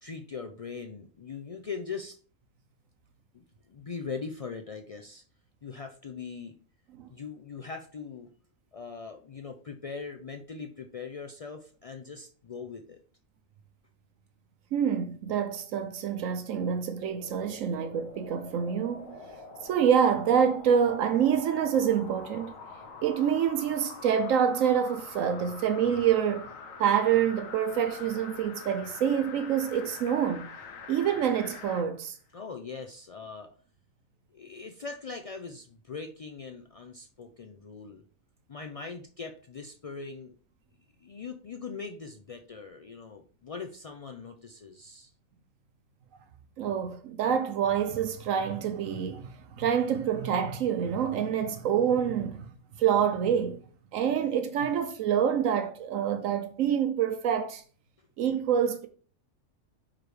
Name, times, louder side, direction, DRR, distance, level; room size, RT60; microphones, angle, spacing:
voice 1, 0.0-2.2 3.3-5.2 5.6-6.6 7.1-8.3 8.7-13.0 32.3-33.5 34.3-38.0 38.5-40.3 41.0-45.1, left 5 dB, 65° left, 0.3 m, -41 dB
voice 2, 14.7-19.1 19.6-22.5 23.0-26.5 26.8-30.5 30.9-32.2 46.6-52.5 52.8-53.6 53.9-57.6 58.2-58.9, right 8 dB, 80° right, 1.0 m, -26 dB
sound 1, 16.9-31.9 32.3-32.4, left 4 dB, 85° left, 1.2 m, -45 dB
5.8 x 5.0 x 3.2 m
omnidirectional pair, 1.3 m